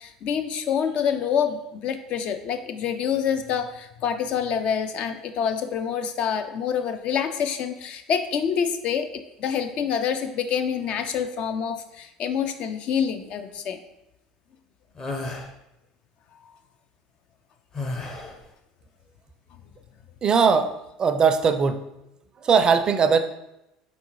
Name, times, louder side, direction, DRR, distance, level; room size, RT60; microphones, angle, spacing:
voice 1, 0.0-9.1 9.4-13.8, left 7 dB, 50° left, 8 dB, 0.4 m, -26 dB
sound 1, 15.0-15.5 17.7-18.4, left 2 dB, 30° left, 0.8 m, -32 dB
voice 2, 20.2-20.7 21.0-21.8 22.4-23.2, right 6 dB, 35° right, 8 dB, 0.4 m, -19 dB
4.0 x 3.5 x 3.0 m, 0.89 s
hypercardioid pair, 70°, 2 cm